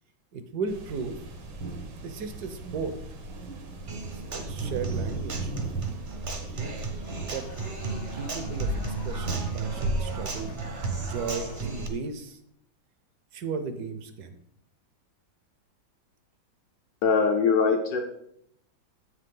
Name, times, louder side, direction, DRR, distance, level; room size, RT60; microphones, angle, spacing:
voice 1, 0.3-1.2 2.0-3.0 3.9-5.5 6.2-6.7 7.2-7.5 8.1-10.6 11.0-12.4 13.3-14.3, right 5 dB, 65° right, 9 dB, 1.1 m, -35 dB
sound 1, 0.7-11.9, right 1 dB, 80° right, 2.0 m, -35 dB
Human voice / Acoustic guitar, 3.9-11.9, right 5 dB, 45° right, 0.7 m, -36 dB
sound 2, 6.9-12.1, left 6 dB, 80° left, 1.6 m, -49 dB
voice 2, 17.0-18.0, left 5 dB, 65° left, 3 dB, 1.0 m, -22 dB
7.8 x 6.7 x 3.7 m, 0.73 s
omnidirectional pair, 2.2 m